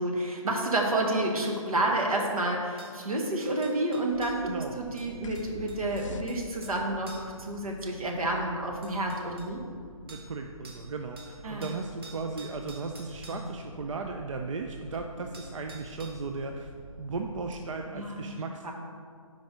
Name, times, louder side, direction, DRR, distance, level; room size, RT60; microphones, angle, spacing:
voice 1, 0.0-9.6 11.4-11.7 13.3-13.4 17.9-18.4 18.6-18.7, right 1 dB, 85° right, 1 dB, 1.2 m, -30 dB
sound 1, 2.0-2.1 2.8-3.0 3.6-4.4 5.0-6.8 7.1-7.4 8.4-8.5 8.8-9.5 10.1-10.3 10.6-10.9 11.2-13.4 15.0-15.1 15.3-16.3 17.5-17.6, right 3 dB, 45° right, 0.9 m, -50 dB
sound 2, 4.1-17.6, right 1 dB, 5° right, 0.6 m, -49 dB
voice 2, 4.4-4.8 10.1-16.7 17.0-18.7, right 4 dB, 60° right, 3 dB, 0.4 m, -36 dB
sound 3, 5.2-6.8, left 4 dB, 65° left, 0.4 m, -43 dB
4.7 x 4.2 x 5.0 m, 2.2 s
hypercardioid pair, 175°, 18 cm